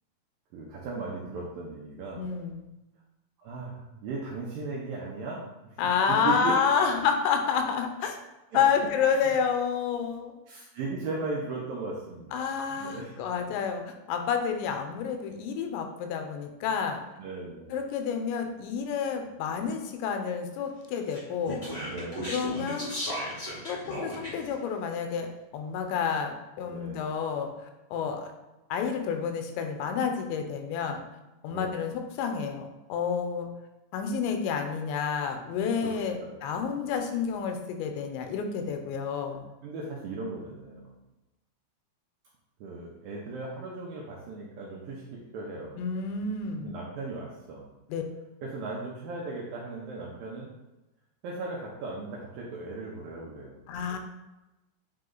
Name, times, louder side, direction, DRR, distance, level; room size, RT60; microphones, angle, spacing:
voice 1, 0.5-2.3 3.4-6.6 6.9-7.0 8.5-8.6 9.0-9.4 10.5-13.1 13.5-13.6 17.2-17.8 19.2-19.3 21.8-22.5 26.7-27.1 31.5-31.7 35.8-36.4 38.6-38.8 39.6-41.0 42.6-45.8 46.6-47.7 48.4-50.5 51.2-53.6, right 3 dB, 75° right, -4 dB, 2.1 m, -37 dB
voice 2, 2.2-2.7 5.8-8.2 8.5-10.3 12.3-13.8 14.1-17.0 17.7-21.6 22.3-22.9 23.7-27.5 27.9-28.3 28.7-31.0 31.4-33.5 33.9-39.4 45.8-46.7 47.9-48.0 53.7-54.0, left 6 dB, 90° left, 5 dB, 3.0 m, -29 dB
Speech, 21.1-24.5, equal, 60° left, 0.7 m, -36 dB
8.8 x 3.2 x 3.9 m, 1.0 s
omnidirectional pair, 5.0 m